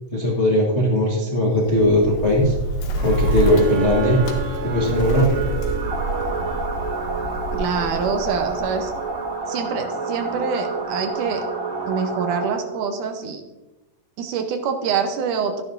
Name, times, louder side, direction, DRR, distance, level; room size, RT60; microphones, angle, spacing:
voice 1, 0.1-2.5 3.0-4.2 4.6-5.4, left 1 dB, 55° left, -4 dB, 0.7 m, -19 dB
Bird, 1.5-9.3, right 1 dB, 80° left, 2.8 m, -28 dB
sound 1, 3.0-13.2, right 7 dB, 90° right, 2.7 m, -31 dB
sound 2, 5.8-12.6, right 1 dB, 40° right, 3.7 m, -31 dB
voice 2, 7.5-8.9 9.5-11.5 11.9-13.4 14.2-15.6, right 6 dB, 75° right, 6 dB, 2.3 m, -25 dB
12.5 x 10.5 x 2.6 m, 1.0 s
omnidirectional pair, 3.9 m